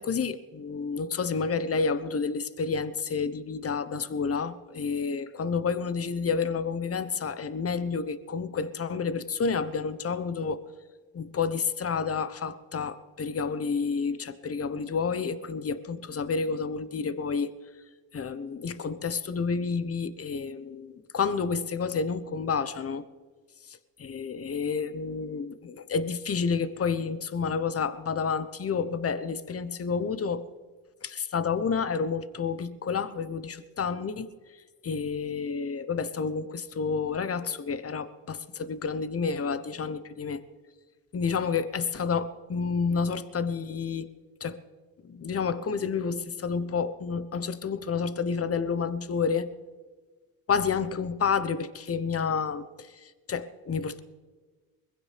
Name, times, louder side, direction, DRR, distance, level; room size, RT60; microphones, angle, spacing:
voice 1, 0.0-10.6 11.1-17.5 18.1-23.0 24.0-30.4 31.0-34.3 34.8-40.4 41.1-44.1 44.4-44.6 45.0-49.5 50.5-54.0, left 5 dB, 40° left, 13 dB, 1.1 m, -30 dB
21.5 x 15.5 x 3.4 m, 1.4 s
supercardioid pair, 65°, 37 cm